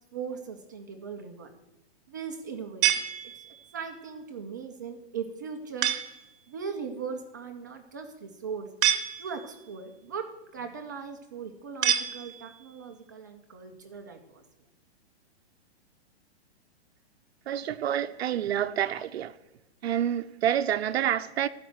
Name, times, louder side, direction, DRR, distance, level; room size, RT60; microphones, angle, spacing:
voice 1, 0.1-1.5 2.1-3.0 3.3-3.5 3.7-5.9 6.5-8.7 9.2-14.4, right 6 dB, 20° right, 0.4 m, -39 dB
sound 1, 2.8-3.8 5.8-6.3 8.8-9.7 11.8-12.7, right 10 dB, 50° right, 1.0 m, -28 dB
voice 2, 17.5-19.3 19.8-21.5, right 10 dB, 65° right, 0.6 m, -28 dB
12.5 x 5.1 x 7.7 m
hypercardioid pair, 160°, 33 cm